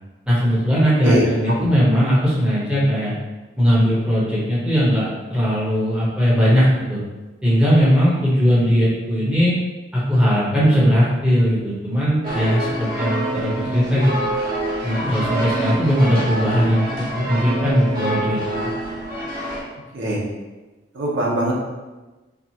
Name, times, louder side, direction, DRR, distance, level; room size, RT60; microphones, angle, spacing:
voice 1, 0.3-3.1 3.6-7.0 7.4-9.5 9.9-14.1 14.8-18.4, equal, 5° right, -9 dB, 1.1 m, -18 dB
voice 2, 1.0-1.6 19.9-20.2 20.9-21.5, right 1 dB, 85° right, -4 dB, 0.9 m, -21 dB
sound 1, 12.2-19.6, right 1 dB, 45° right, 0.9 m, -26 dB
4.6 x 2.4 x 2.9 m, 1.2 s
head